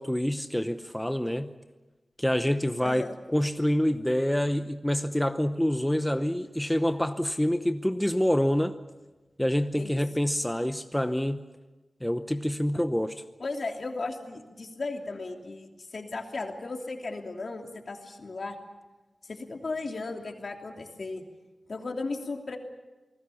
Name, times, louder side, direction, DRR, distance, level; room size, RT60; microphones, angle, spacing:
voice 1, 0.0-1.5 2.2-8.8 9.4-11.4 12.0-13.2, equal, 5° left, 9 dB, 0.8 m, -27 dB
voice 2, 2.8-3.1 9.8-10.0 13.4-18.6 19.2-21.2 21.7-22.6, left 3 dB, 60° left, 3 dB, 3.0 m, -36 dB
28.5 x 19.5 x 7.1 m, 1.2 s
wide cardioid pair, 105°, 0 cm